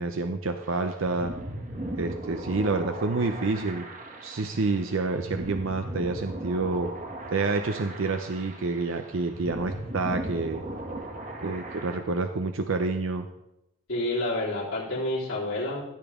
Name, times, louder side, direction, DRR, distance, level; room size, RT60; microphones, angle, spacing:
voice 1, 0.0-1.3 1.9-3.8 4.2-6.9 7.3-10.6 11.4-13.3, right 3 dB, 85° right, 6 dB, 0.6 m, -28 dB
sound 1, 0.6-12.0, right 1 dB, 40° right, 1.3 m, -38 dB
voice 2, 13.9-15.8, left 1 dB, 85° left, -9 dB, 3.9 m, -29 dB
15.5 x 6.9 x 3.7 m, 0.85 s
head